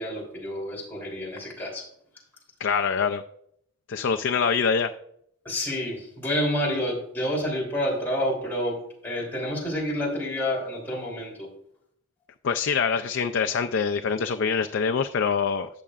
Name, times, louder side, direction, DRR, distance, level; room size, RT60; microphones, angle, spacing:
voice 1, 0.0-1.8 5.4-8.8 9.0-11.5, equal, 10° left, -4 dB, 3.2 m, -29 dB
voice 2, 2.6-3.2 3.9-4.9 12.4-15.7, left 6 dB, 55° left, 6 dB, 0.4 m, -24 dB
17.0 x 6.6 x 2.4 m, 0.71 s
head